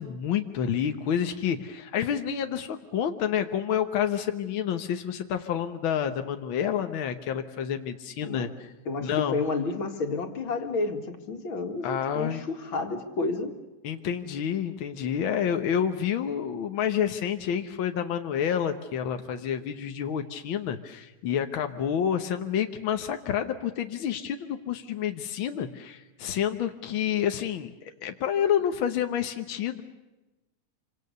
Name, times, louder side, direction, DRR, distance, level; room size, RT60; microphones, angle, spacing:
voice 1, 0.0-8.7 9.0-9.4 11.8-12.4 13.8-29.8, left 9 dB, 70° left, 6 dB, 1.2 m, -29 dB
voice 2, 8.9-13.5, left 3 dB, 40° left, 5 dB, 2.5 m, -31 dB
27.0 x 26.0 x 6.8 m, 1.1 s
omnidirectional pair, 3.8 m